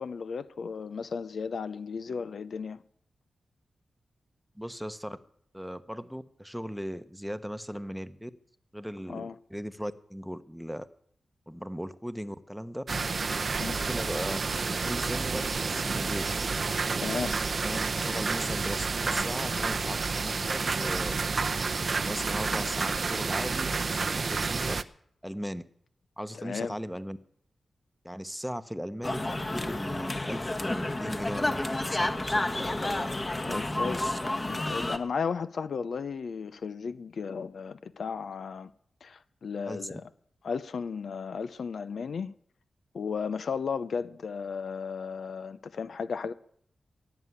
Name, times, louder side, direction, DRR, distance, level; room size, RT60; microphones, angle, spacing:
voice 1, 0.0-2.8 9.1-9.4 13.6-13.8 17.0-17.4 26.3-26.7 33.5-34.0 34.4-38.7 39.0-40.0 40.4-42.3 42.9-46.3, left 5 dB, 75° left, 0.6 m, -34 dB
voice 2, 4.5-5.2 5.5-8.3 8.7-10.9 11.5-12.8 13.8-14.4 14.8-16.3 17.6-21.2 22.0-24.8 25.2-25.6 26.2-27.2 28.0-32.8 33.4-34.2 39.6-40.0, equal, ahead, 1.0 m, -38 dB
sound 1, 12.9-24.8, right 4 dB, 60° right, 0.7 m, -30 dB
sound 2, 29.0-35.0, left 2 dB, 35° left, 1.5 m, -30 dB
17.0 x 6.8 x 9.7 m
cardioid pair, 55°, 0 cm